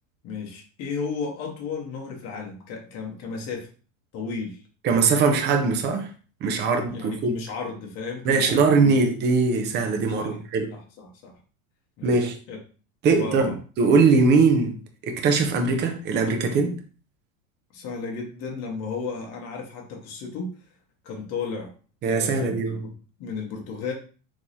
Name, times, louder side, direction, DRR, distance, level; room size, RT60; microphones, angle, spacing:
voice 1, 0.2-3.7 4.1-4.6 6.9-9.0 10.1-10.4 10.7-11.3 12.0-12.2 12.5-12.6 13.0-13.6 17.7-20.5 21.0-21.7 22.0-22.9 23.2-23.9, left 5 dB, 40° left, 1.1 m, -34 dB
voice 2, 4.8-6.1 6.4-7.3 8.2-10.7 12.0-12.4 13.0-14.8 15.0-16.8 22.0-22.8, right 4 dB, 25° right, 0.6 m, -21 dB
3.6 x 3.1 x 2.6 m
supercardioid pair, 130°, 41 cm